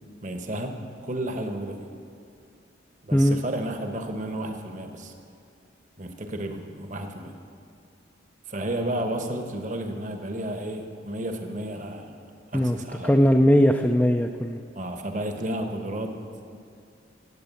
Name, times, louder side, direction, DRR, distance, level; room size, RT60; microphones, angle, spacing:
voice 1, 0.2-0.8 1.0-1.9 3.0-5.1 6.0-7.3 8.5-12.1 12.5-13.3 14.7-16.1 16.4-16.6, right 1 dB, 40° right, 5 dB, 1.1 m, -32 dB
voice 2, 13.0-14.6, equal, 10° left, 3 dB, 0.4 m, -19 dB
16.5 x 8.7 x 7.0 m, 2.4 s
head